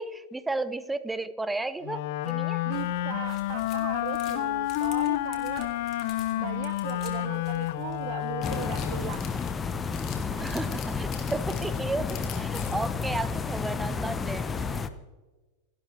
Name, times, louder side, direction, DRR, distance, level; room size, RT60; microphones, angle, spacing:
voice 1, 0.0-2.6 10.4-14.8, right 2 dB, 5° right, 16 dB, 0.9 m, -33 dB
Wind instrument woodwind instrument, 1.8-9.2, left 14 dB, 50° left, 1.1 m, -30 dB
voice 2, 2.6-5.7 6.3-9.2 10.3-10.6, right 14 dB, 45° right, 13 dB, 0.8 m, -39 dB
sound 1, 2.7-12.9, left 7 dB, 35° left, 3.2 m, -46 dB
sound 2, 8.4-14.9, left 5 dB, 15° left, 1.0 m, -31 dB
29.0 x 12.5 x 3.5 m, 1.2 s
figure-of-eight pair, 90°, 0 cm